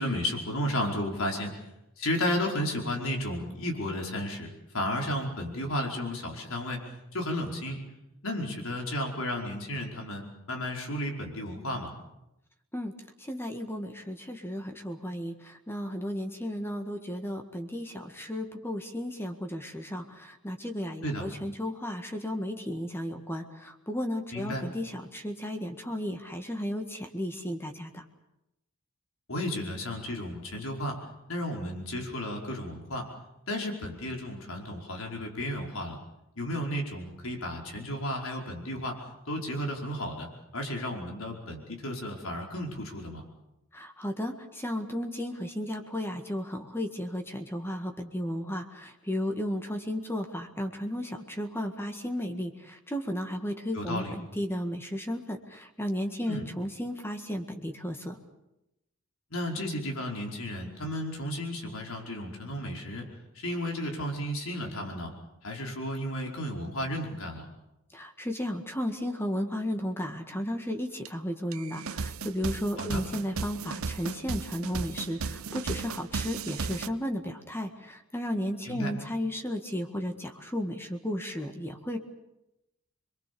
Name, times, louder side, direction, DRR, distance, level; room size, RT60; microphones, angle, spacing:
voice 1, 0.0-1.5 2.0-6.8 7.1-7.8 8.2-11.9 21.0-21.2 24.3-24.6 29.3-31.0 31.3-33.1 33.5-36.0 36.4-39.0 39.3-40.3 40.5-43.2 53.7-54.1 56.3-56.4 59.3-63.1 63.3-65.1 65.4-67.5 72.8-73.0 78.6-78.9, left 1 dB, 75° left, 1 dB, 5.1 m, -33 dB
voice 2, 13.2-28.0 43.7-58.2 67.9-82.0, equal, 10° left, 5 dB, 1.8 m, -34 dB
sound 1, 71.0-71.1 71.5-76.9, right 5 dB, 85° right, 0.8 m, -35 dB
27.0 x 23.0 x 7.0 m, 0.89 s
head